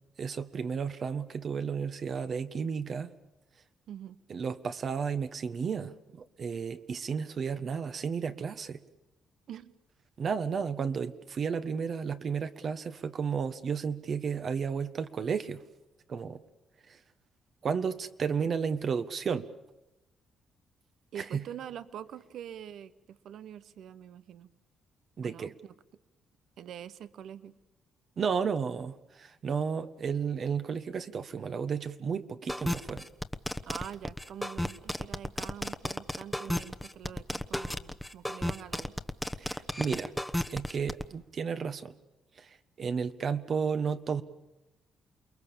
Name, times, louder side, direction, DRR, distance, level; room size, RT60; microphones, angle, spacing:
voice 1, 0.2-3.1 4.3-8.8 10.2-15.6 16.1-16.4 16.9-17.0 17.6-19.5 21.2-21.4 25.2-25.5 28.2-33.1 39.4-40.1 40.5-41.9 42.4-44.2, right 6 dB, 50° right, 10 dB, 1.3 m, -33 dB
voice 2, 3.9-4.2 9.5-9.7 21.1-24.5 25.2-25.7 26.6-27.6 33.7-39.0, right 9 dB, 70° right, 14 dB, 1.0 m, -45 dB
sound 1, 32.5-41.0, left 1 dB, 5° left, 1.1 m, -33 dB
28.5 x 21.5 x 7.1 m, 0.97 s
cardioid pair, 90°, 0 cm